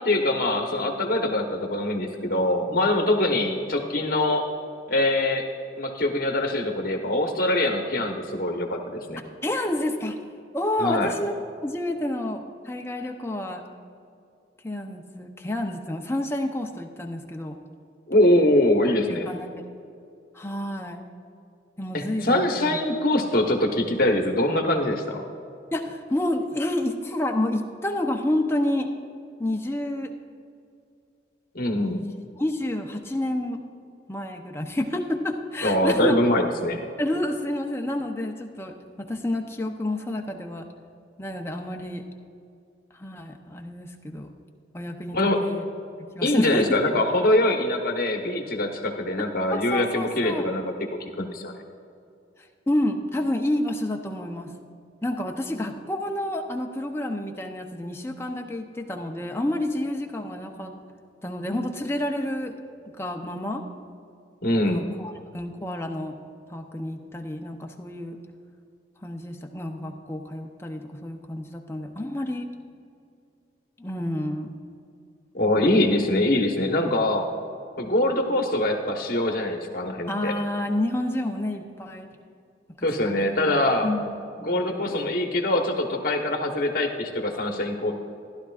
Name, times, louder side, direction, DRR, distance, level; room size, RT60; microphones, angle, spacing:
voice 1, 0.0-4.4 4.9-5.5 5.8-9.2 10.8-11.1 18.1-19.3 21.9-25.3 31.5-32.0 35.6-36.9 45.1-45.4 46.2-50.7 51.0-51.5 64.4-64.8 75.3-77.3 77.8-80.3 82.8-83.9 84.4-87.9, left 1 dB, 55° left, 3 dB, 1.1 m, -23 dB
voice 2, 9.4-10.2 10.5-11.3 11.6-13.6 14.6-17.6 19.1-19.5 20.3-21.1 21.8-22.8 25.7-28.9 29.4-30.1 31.8-32.0 32.4-33.6 34.1-36.2 37.0-40.7 41.2-42.0 43.0-44.3 44.7-45.6 46.1-46.7 49.5-50.5 52.7-54.5 55.0-60.8 61.2-62.5 62.9-63.6 64.7-66.1 66.5-68.2 69.0-72.5 73.8-74.6 75.6-75.9 77.8-78.2 80.1-82.1 82.8-83.4 83.8-85.0, left 1 dB, 15° left, 3 dB, 0.7 m, -29 dB
14.5 x 11.5 x 2.4 m, 2.5 s
head